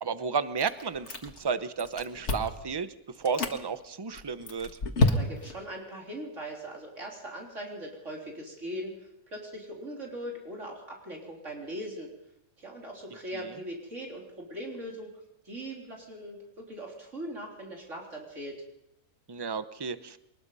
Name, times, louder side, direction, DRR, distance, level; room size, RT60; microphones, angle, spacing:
voice 1, 0.0-4.8 19.3-20.2, right 5 dB, 25° right, 12 dB, 0.6 m, -32 dB
Chewing mastication, 0.6-1.5 1.8-2.6 3.1-3.6 4.1-5.6, left 3 dB, 50° left, 2.1 m, -29 dB
voice 2, 5.0-12.1 12.6-15.1 15.4-18.6, right 1 dB, 55° right, -1 dB, 4.0 m, -40 dB
23.0 x 20.5 x 5.5 m, 0.81 s
omnidirectional pair, 1.5 m